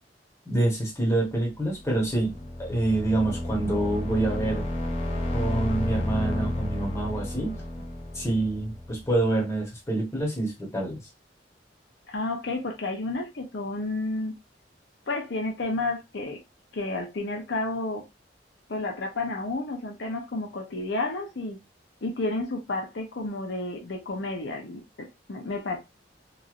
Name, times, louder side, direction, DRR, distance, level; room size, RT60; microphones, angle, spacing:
voice 1, 0.5-4.6 5.3-7.6 8.1-11.0, right 2 dB, 15° left, 1.1 m, -27 dB
sound 1, 1.7-9.4, left 1 dB, 35° left, 0.6 m, -32 dB
voice 2, 12.1-14.3 15.1-16.4 16.7-18.0 18.7-21.6 22.0-25.8, left 2 dB, 70° left, 0.7 m, -31 dB
3.0 x 2.6 x 2.5 m
head